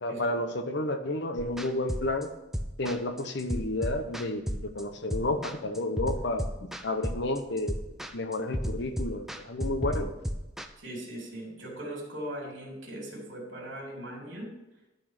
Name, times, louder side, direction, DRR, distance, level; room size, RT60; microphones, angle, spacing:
voice 1, 0.0-2.3 2.8-7.8 8.1-10.1, left 2 dB, 60° left, 8 dB, 0.9 m, -31 dB
sound 1, 1.4-10.7, equal, ahead, 0.5 m, -34 dB
voice 2, 10.8-14.5, right 1 dB, 70° right, -2 dB, 3.3 m, -39 dB
12.0 x 4.2 x 6.6 m, 0.96 s
head